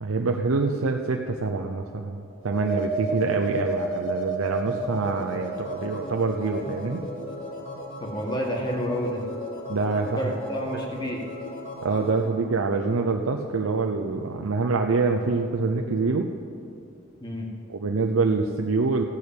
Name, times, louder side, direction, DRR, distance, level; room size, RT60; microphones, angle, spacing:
voice 1, 0.0-7.0 9.7-10.2 11.8-16.3 17.7-19.0, right 3 dB, 80° right, 3 dB, 0.6 m, -25 dB
sound 1, 2.4-12.2, right 2 dB, 70° left, 2.0 m, -33 dB
voice 2, 8.0-9.2 10.2-11.2 17.2-17.5, equal, 20° left, -1 dB, 1.8 m, -29 dB
14.5 x 6.6 x 8.6 m, 2.6 s
head